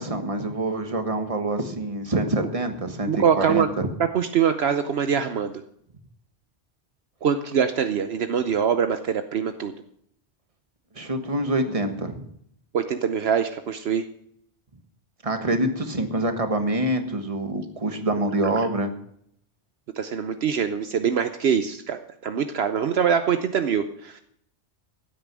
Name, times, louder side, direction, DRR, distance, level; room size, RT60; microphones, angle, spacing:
voice 1, 0.0-3.9 10.9-12.3 15.2-18.9, right 1 dB, 30° right, 7 dB, 1.5 m, -26 dB
voice 2, 3.1-3.7 4.1-5.5 7.2-9.8 12.7-14.0 20.0-24.2, right 7 dB, 70° right, 8 dB, 1.0 m, -24 dB
15.5 x 8.8 x 6.1 m, 0.69 s
omnidirectional pair, 1.1 m